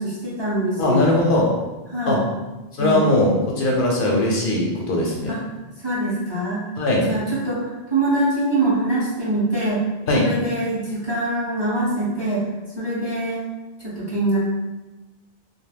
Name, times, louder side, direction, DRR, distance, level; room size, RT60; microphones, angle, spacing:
voice 1, 0.0-1.1 1.9-2.2 2.8-3.1 5.3-5.4 5.8-6.7 7.1-9.8 10.2-12.4 12.8-13.4 13.8-14.4, right 1 dB, 30° right, -7 dB, 0.6 m, -24 dB
voice 2, 0.8-1.5 2.1-2.2 2.8-5.3 6.8-7.1 10.1-10.2, left 1 dB, 65° left, -2 dB, 0.7 m, -20 dB
2.6 x 2.2 x 3.4 m, 1.1 s
omnidirectional pair, 1.0 m